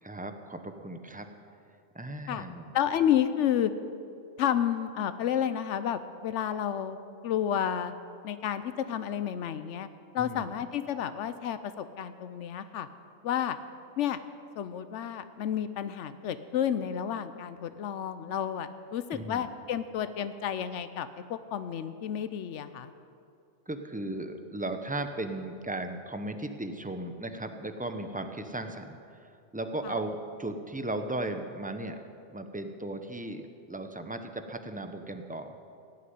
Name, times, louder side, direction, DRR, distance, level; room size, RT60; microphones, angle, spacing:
voice 1, 0.0-1.3 1.9-2.7 10.1-10.5 19.1-19.5 23.7-32.0 32.3-35.6, right 2 dB, 10° right, 7 dB, 0.6 m, -36 dB
voice 2, 2.7-3.7 4.4-7.0 7.2-7.9 8.2-9.9 10.1-12.9 13.2-13.6 14.0-14.2 14.6-22.9 29.8-30.0, left 9 dB, 90° left, 12 dB, 1.0 m, -31 dB
17.0 x 6.7 x 9.4 m, 2.5 s
omnidirectional pair, 1.2 m